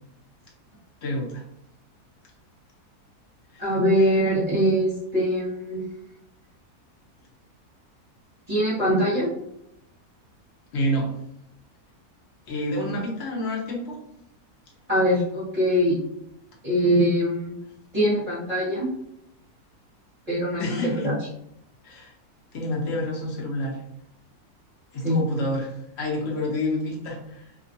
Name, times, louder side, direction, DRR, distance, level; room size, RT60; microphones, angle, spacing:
voice 1, 1.0-1.4 3.5-3.7 10.7-11.1 12.5-14.0 20.6-21.1 21.8-22.1 22.5-23.8 24.9-27.5, left 1 dB, 55° left, -2 dB, 0.9 m, -28 dB
voice 2, 3.6-5.8 8.5-9.3 14.9-16.0 16.6-17.5 17.9-18.9 20.3-21.1 25.0-25.1, equal, 25° right, -9 dB, 1.1 m, -22 dB
2.8 x 2.4 x 2.6 m, 0.77 s
omnidirectional pair, 1.6 m